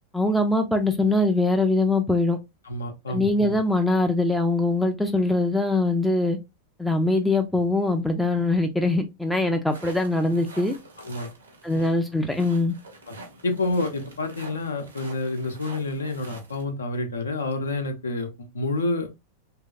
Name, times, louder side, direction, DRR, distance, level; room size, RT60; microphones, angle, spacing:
voice 1, 0.1-2.4 3.1-6.4 6.8-10.8 11.6-12.7, left 2 dB, ahead, 0.4 m, -22 dB
voice 2, 2.7-3.3 11.0-11.3 13.1-13.2 13.4-19.1, left 2 dB, 70° left, 0.7 m, -28 dB
sound 1, 9.7-16.6, right 2 dB, 75° right, 0.8 m, -46 dB
3.0 x 2.7 x 2.3 m
figure-of-eight pair, 90°, 0 cm